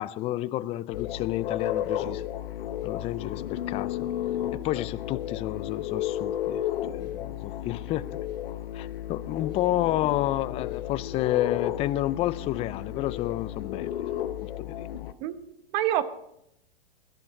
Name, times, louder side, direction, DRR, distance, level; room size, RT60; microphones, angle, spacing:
voice 1, 0.0-2.2 2.8-4.1 4.5-6.6 6.9-8.2 8.7-14.9, left 14 dB, 20° left, 0.4 m, -30 dB
sound 1, 0.9-15.1, left 11 dB, 65° left, 1.0 m, -33 dB
voice 2, 15.2-16.0, right 13 dB, 45° right, 0.9 m, -28 dB
17.0 x 11.5 x 4.0 m
hypercardioid pair, 110°, 30 cm